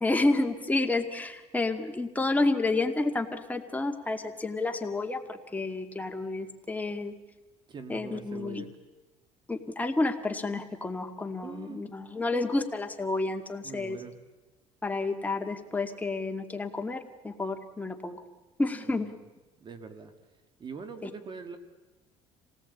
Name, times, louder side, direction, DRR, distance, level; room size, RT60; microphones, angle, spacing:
voice 1, 0.0-7.1 7.9-8.6 9.5-14.0 14.8-18.2 18.6-19.1 21.0-21.1, left 2 dB, 10° left, 5 dB, 2.2 m, -30 dB
voice 2, 7.7-8.7 11.4-11.8 13.6-14.1 18.9-19.1 19.6-20.1 20.6-21.6, right 5 dB, 40° right, 9 dB, 2.3 m, -42 dB
27.0 x 18.5 x 8.6 m, 1.1 s
cardioid pair, 105°, 13 cm